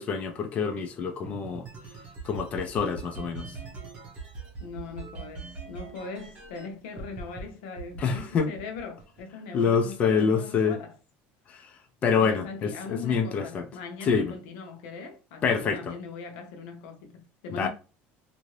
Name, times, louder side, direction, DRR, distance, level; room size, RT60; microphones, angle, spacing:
voice 1, 0.0-1.7 2.2-3.6 8.0-8.5 9.5-10.8 11.5-11.7 12.0-13.7 14.0-14.3 15.4-15.9 17.5-17.7, left 6 dB, 30° left, 0.4 m, -26 dB
sound 1, 1.2-6.7 7.0-7.4 7.8-9.2, right 4 dB, 30° right, 0.9 m, -41 dB
voice 2, 4.6-10.9 12.2-17.7, left 4 dB, 90° left, 0.8 m, -40 dB
2.7 x 2.6 x 3.1 m
cardioid pair, 160°, 5 cm